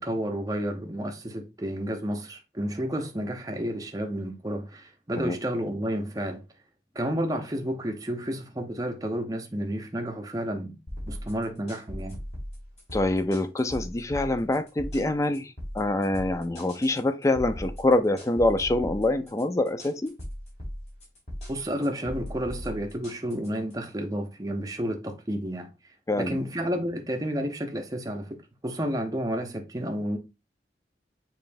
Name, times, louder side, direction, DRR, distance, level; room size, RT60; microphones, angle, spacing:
voice 1, 0.0-6.4 6.9-10.8 11.1-12.2 21.5-25.7 26.2-28.4 28.6-30.2, equal, 20° right, 0.6 m, -31 dB
sound 1, 10.9-23.7, equal, 35° left, 2.3 m, -39 dB
voice 2, 12.9-20.1 26.1-26.4, left 2 dB, 15° left, 0.3 m, -25 dB
6.7 x 3.1 x 2.5 m
head